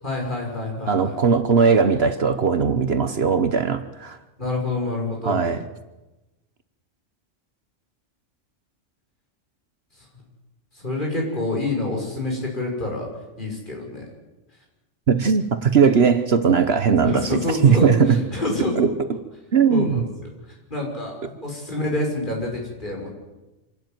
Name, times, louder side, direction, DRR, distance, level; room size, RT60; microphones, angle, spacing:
voice 1, 0.0-1.2 4.4-5.4 10.8-13.1 13.4-14.0 17.0-19.2 19.7-20.1 20.7-23.1, left 2 dB, 40° left, -1 dB, 6.2 m, -27 dB
voice 2, 0.9-4.2 5.2-5.6 15.1-18.2 18.8-18.9 19.5-20.0, right 6 dB, 55° right, 10 dB, 1.2 m, -19 dB
26.5 x 12.5 x 9.3 m, 1.1 s
omnidirectional pair, 1.3 m